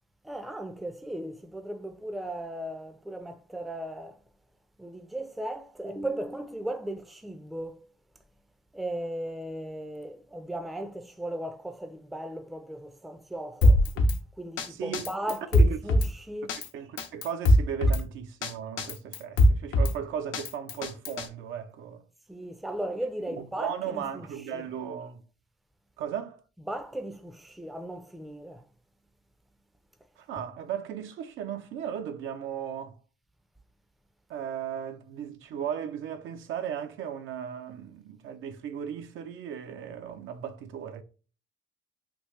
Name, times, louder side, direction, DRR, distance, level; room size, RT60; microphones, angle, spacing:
voice 1, 0.2-4.2 4.8-7.8 8.7-13.8 14.4-16.5 22.3-24.3 24.5-24.6 26.7-28.6, right 1 dB, ahead, 0.4 m, -36 dB
Drum kit, 13.6-14.2 14.6-14.7 14.9-16.1 16.5-16.7 17.0-18.0 18.4-18.5 18.8-19.9 20.3-21.3, left 1 dB, 75° left, 0.6 m, -21 dB
voice 2, 14.7-15.0 15.6-15.8 16.7-22.0 23.3-25.2 26.0-26.4 30.2-33.0 34.3-41.0, right 8 dB, 75° right, 0.5 m, -36 dB
3.5 x 2.4 x 3.1 m
cardioid pair, 90°, 20 cm